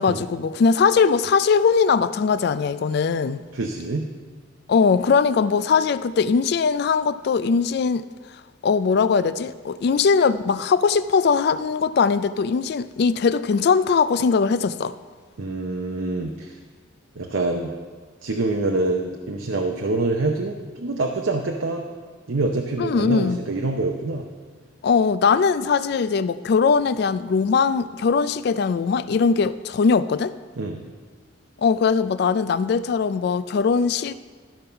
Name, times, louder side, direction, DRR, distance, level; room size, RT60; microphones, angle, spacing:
voice 1, 0.0-3.4 4.7-8.1 8.6-14.9 22.8-23.4 24.8-30.3 31.6-34.1, left 5 dB, 55° left, 0.3 m, -20 dB
voice 2, 3.5-4.1 15.4-16.6 17.2-17.7 18.2-21.8 22.3-24.2 30.6-30.9, right 2 dB, 80° right, 0.7 m, -25 dB
12.5 x 5.4 x 5.6 m
head